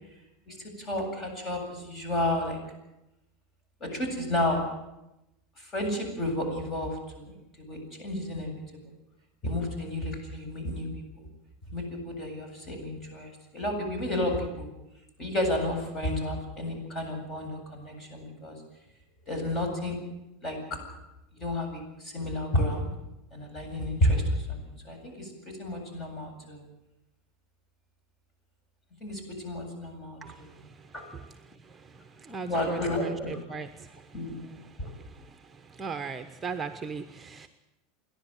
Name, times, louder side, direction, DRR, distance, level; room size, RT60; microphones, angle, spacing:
voice 1, 0.5-2.6 3.8-4.6 5.6-8.6 9.4-10.9 11.2-11.3 11.7-14.7 15.2-18.5 19.2-20.0 20.4-20.6 21.3-22.9 23.3-26.6 29.0-30.6 30.9-31.1 32.5-33.3 34.1-34.9, left 1 dB, 30° left, 4 dB, 8.0 m, -31 dB
voice 2, 32.3-33.7 35.8-37.5, right 5 dB, 15° right, 8 dB, 1.0 m, -36 dB
29.0 x 11.0 x 9.2 m, 0.92 s
supercardioid pair, 120°, 0 cm